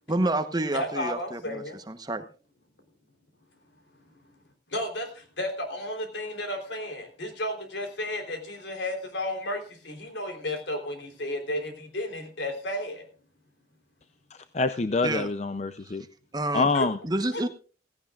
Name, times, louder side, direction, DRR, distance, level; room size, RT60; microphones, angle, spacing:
voice 1, 0.1-2.2 15.0-15.3 15.8-16.0 16.3-16.7 17.0-17.5, right 2 dB, 20° right, 9 dB, 1.0 m, -29 dB
voice 2, 0.7-1.8 4.7-13.1 16.7-16.9 17.3-17.5, left 1 dB, 75° left, 5 dB, 3.4 m, -33 dB
voice 3, 14.5-16.0 16.5-17.0, left 3 dB, 40° left, 11 dB, 0.5 m, -25 dB
16.5 x 16.0 x 2.4 m, 0.37 s
head